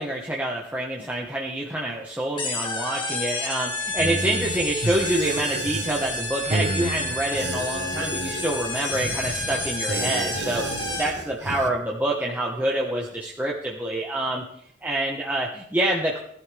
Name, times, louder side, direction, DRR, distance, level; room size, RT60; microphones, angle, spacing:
voice 1, 0.0-10.7 11.0-14.4 14.8-16.2, right 1 dB, 10° right, -3 dB, 1.5 m, -27 dB
sound 1, 2.4-11.3, left 2 dB, 25° left, 2.2 m, -30 dB
sound 2, 3.9-11.7, right 2 dB, 70° right, 1.3 m, -31 dB
17.0 x 11.5 x 3.6 m, 0.70 s
head